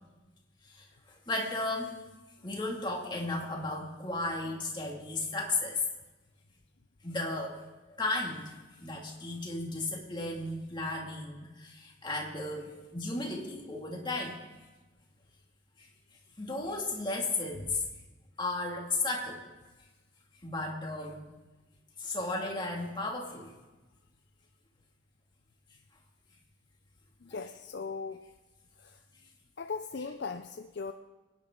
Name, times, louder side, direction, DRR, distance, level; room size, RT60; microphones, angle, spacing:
voice 1, 0.6-2.0 2.4-5.8 7.0-7.6 7.9-8.5 8.8-14.4 15.8-15.9 16.4-17.8 18.4-19.5 20.4-21.3 22.0-23.5, left 2 dB, 20° left, -1 dB, 2.3 m, -34 dB
voice 2, 27.2-28.2 28.8-29.0 29.6-30.9, left 4 dB, 55° left, 7 dB, 0.5 m, -38 dB
25.0 x 10.0 x 3.8 m, 1.2 s
head